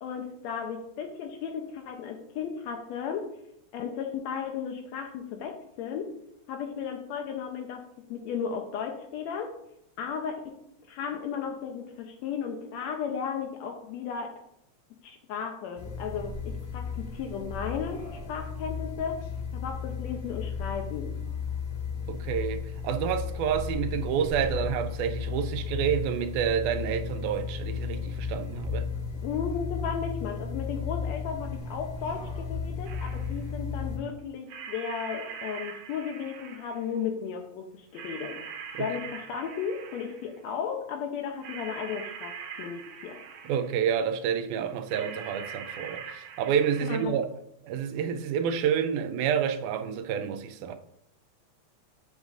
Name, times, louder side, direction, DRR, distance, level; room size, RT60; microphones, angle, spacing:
voice 1, 0.0-3.3 3.7-6.1 6.5-7.8 8.1-9.5 10.0-10.6 10.9-14.3 15.0-18.0 18.3-19.3 19.6-21.2 29.2-38.4 38.8-43.2 46.8-47.2, left 7 dB, 75° left, 1.7 m, -35 dB
sound 1, 15.8-34.0, left 5 dB, 60° left, 2.9 m, -34 dB
voice 2, 22.1-28.9 38.7-38.9 43.4-47.3 47.6-50.8, right 8 dB, 85° right, 2.0 m, -29 dB
sound 2, 32.8-33.4 34.5-36.9 37.9-40.4 41.4-43.8 44.9-47.0, right 7 dB, 70° right, 1.7 m, -42 dB
7.0 x 6.5 x 2.4 m
omnidirectional pair, 3.4 m